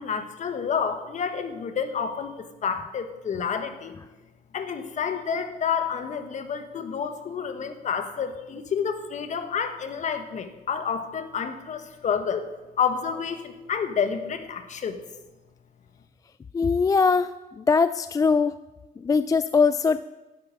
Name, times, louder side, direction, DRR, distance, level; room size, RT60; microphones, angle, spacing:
voice 1, 0.0-4.0 4.5-15.0, left 6 dB, 45° left, 9 dB, 1.5 m, -29 dB
voice 2, 16.5-17.3 17.6-18.6 19.0-20.0, left 5 dB, 20° left, 14 dB, 0.3 m, -21 dB
11.0 x 8.9 x 7.7 m, 1.1 s
cardioid pair, 110°, 17 cm